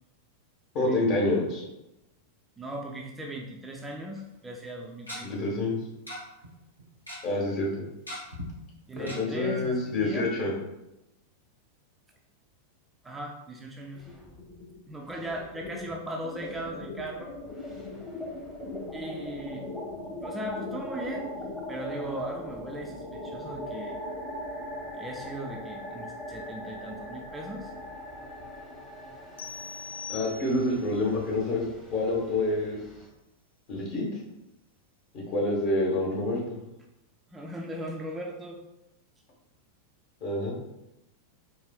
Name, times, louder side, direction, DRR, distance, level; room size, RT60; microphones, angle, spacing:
voice 1, 0.7-1.6 5.2-5.8 7.2-7.7 8.9-10.5 30.1-32.8 33.7-34.0 35.1-36.6 40.2-40.5, left 2 dB, 45° left, -2 dB, 1.2 m, -27 dB
voice 2, 2.6-5.3 8.9-10.2 13.0-14.0 14.9-17.3 18.9-19.6 20.2-21.4 21.7-24.0 25.0-27.7 37.3-38.6, right 1 dB, 10° right, 0 dB, 0.4 m, -38 dB
Tick-tock, 4.2-4.3 5.1-5.2 6.1-6.2 6.4-6.5 6.8-7.2 8.1-8.5 9.1-9.2 9.6-9.7 10.0-10.1, left 1 dB, 85° left, 0.9 m, -38 dB
sound 1, 13.9-14.7 15.0-33.1, left 1 dB, 10° left, 0.9 m, -40 dB
sound 2, 29.4-30.9, left 6 dB, 65° left, 0.3 m, -41 dB
4.6 x 2.7 x 2.3 m, 0.91 s
figure-of-eight pair, 90°, 0 cm